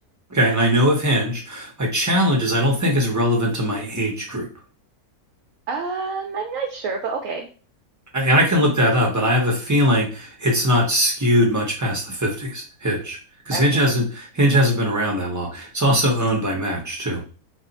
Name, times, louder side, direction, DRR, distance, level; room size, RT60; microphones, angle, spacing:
voice 1, 0.3-4.5 8.1-13.2 13.5-17.2, equal, 20° right, -1 dB, 0.5 m, -20 dB
voice 2, 5.7-7.5 13.5-13.8 16.3-16.4, right 4 dB, 70° right, 2 dB, 0.9 m, -28 dB
2.5 x 2.3 x 3.9 m, 0.36 s
omnidirectional pair, 1.6 m